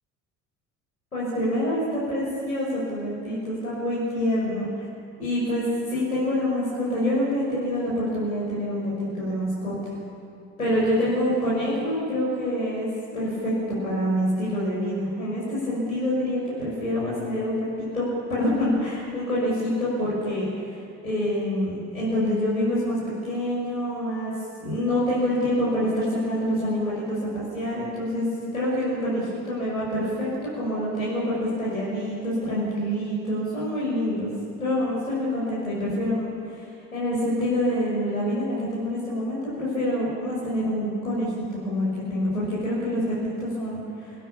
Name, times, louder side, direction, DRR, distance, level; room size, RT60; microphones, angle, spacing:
voice 1, 1.1-4.9 5.2-5.6 5.9-9.9 10.6-12.9 13.1-18.0 18.3-20.8 21.0-24.3 24.6-28.2 28.5-30.3 30.5-34.3 34.6-36.6 36.9-44.1, left 1 dB, 85° left, -8 dB, 6.5 m, -26 dB
28.0 x 17.0 x 8.7 m, 2.4 s
figure-of-eight pair, 55°, 41 cm